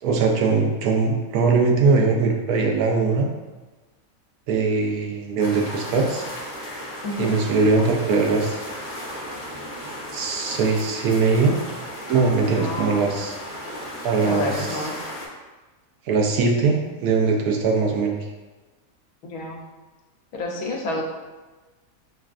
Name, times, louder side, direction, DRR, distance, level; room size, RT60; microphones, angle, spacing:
voice 1, 0.0-3.3 4.5-6.2 7.2-8.6 10.1-11.6 12.1-13.3 14.0-14.8 16.1-18.2, right 4 dB, 90° right, 1 dB, 1.1 m, -21 dB
sound 1, 5.4-15.3, equal, 35° left, 1.0 m, -35 dB
voice 2, 7.0-7.4 12.4-13.2 14.2-15.0 19.2-19.6 20.3-21.0, left 2 dB, 80° left, 0 dB, 1.1 m, -29 dB
5.6 x 2.4 x 2.4 m, 1.2 s
omnidirectional pair, 1.5 m